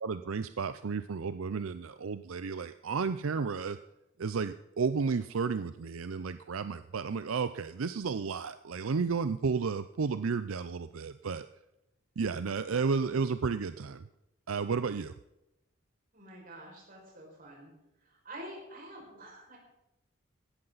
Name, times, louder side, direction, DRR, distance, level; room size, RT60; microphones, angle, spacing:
voice 1, 0.0-3.8 4.2-11.5 12.2-14.1 14.5-15.1, right 5 dB, 80° right, 12 dB, 0.5 m, -32 dB
voice 2, 16.1-17.7 18.0-19.6, right 1 dB, 40° right, -1 dB, 5.8 m, -47 dB
17.0 x 13.5 x 4.0 m, 0.89 s
head